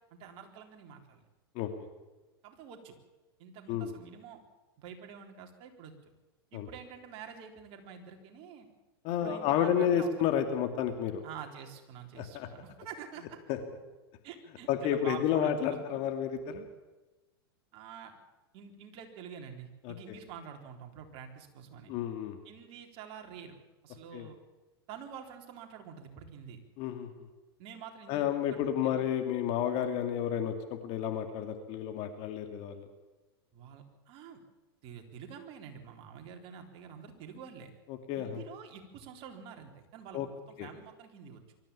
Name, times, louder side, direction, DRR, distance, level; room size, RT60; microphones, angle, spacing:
voice 1, 0.1-1.2 2.4-2.9 3.4-4.4 4.8-6.1 6.5-8.7 9.1-10.1 11.2-13.2 14.2-15.8 17.7-18.1 18.5-21.9 22.4-23.6 23.8-24.4 24.9-26.6 27.6-29.0 33.5-34.4 34.8-37.7 38.2-41.4, right 7 dB, 45° right, 3 dB, 3.8 m, -47 dB
voice 2, 9.0-11.2 12.2-12.5 13.5-13.6 14.7-16.6 19.8-19.9 21.9-22.4 24.1-24.3 26.8-27.1 28.1-32.9 37.9-38.4 40.1-40.3 40.6-40.7, left 9 dB, 45° left, 6 dB, 2.5 m, -31 dB
24.0 x 14.0 x 8.6 m, 1.1 s
hypercardioid pair, 105°, 13 cm